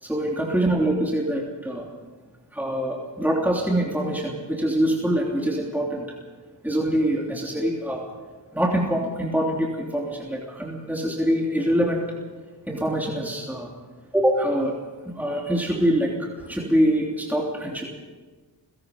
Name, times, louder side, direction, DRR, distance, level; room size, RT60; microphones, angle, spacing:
voice 1, 0.0-1.9 2.5-6.1 6.6-8.0 8.5-12.0 12.7-13.7 14.1-14.7 15.1-17.9, right 1 dB, 5° right, -2 dB, 3.2 m, -24 dB
28.5 x 17.0 x 5.4 m, 1.4 s
wide cardioid pair, 60°, 45 cm